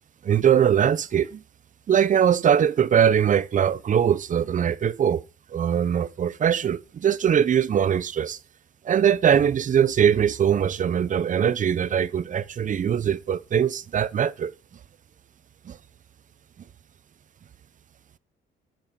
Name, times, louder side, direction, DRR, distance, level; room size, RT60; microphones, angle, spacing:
voice 1, 0.2-1.4 1.9-5.2 5.5-8.4 8.8-14.5 15.7-15.8, right 8 dB, 40° right, 0.6 m, -21 dB
7.6 x 6.8 x 5.1 m
cardioid pair, 90°, 20 cm